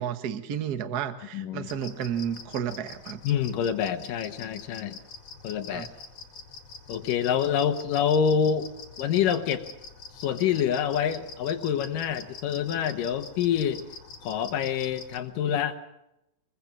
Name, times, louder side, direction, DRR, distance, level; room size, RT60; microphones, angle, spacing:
voice 1, 0.0-3.2 5.7-5.9, right 8 dB, 60° right, 10 dB, 1.0 m, -32 dB
voice 2, 1.3-1.7 3.2-5.0 5.4-5.9 6.9-8.7 9.0-9.6 10.1-13.8 14.2-15.8, left 8 dB, 80° left, 8 dB, 2.8 m, -26 dB
sound 1, 1.7-15.2, left 4 dB, 55° left, 3.0 m, -45 dB
25.0 x 23.0 x 6.0 m, 0.88 s
omnidirectional pair, 3.8 m